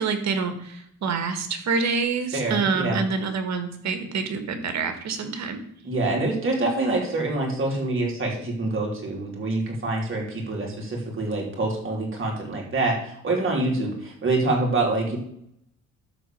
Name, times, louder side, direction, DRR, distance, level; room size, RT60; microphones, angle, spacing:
voice 1, 0.0-5.6, right 5 dB, 65° right, 7 dB, 1.9 m, -27 dB
voice 2, 2.3-3.0 5.8-15.2, right 2 dB, 40° right, -1 dB, 3.8 m, -26 dB
12.5 x 4.1 x 7.1 m, 0.70 s
cardioid pair, 90°, 30 cm